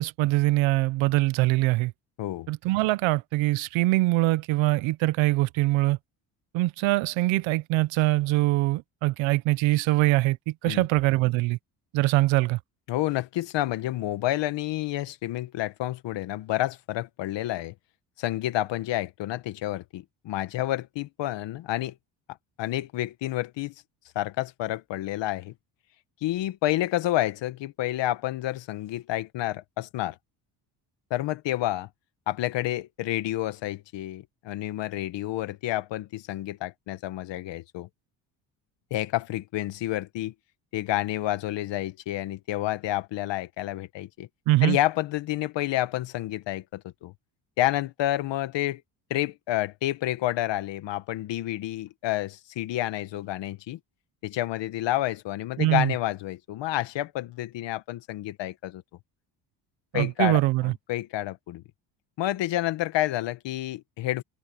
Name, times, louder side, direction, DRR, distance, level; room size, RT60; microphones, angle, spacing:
voice 1, 0.0-1.9 2.5-6.0 6.5-10.4 10.6-11.6 11.9-12.6 44.5-44.8 55.6-55.9 59.9-60.7, right 19 dB, 80° right, 0.9 m, -23 dB
voice 2, 12.9-17.7 18.2-21.9 22.6-23.7 24.1-25.5 26.2-30.2 31.1-31.9 32.3-37.9 38.9-40.3 40.7-44.3 44.6-47.1 47.6-48.8 49.1-53.8 54.2-58.8 59.9-61.6 62.2-64.2, left 15 dB, 65° left, 1.5 m, -29 dB
cardioid pair, 105°, 46 cm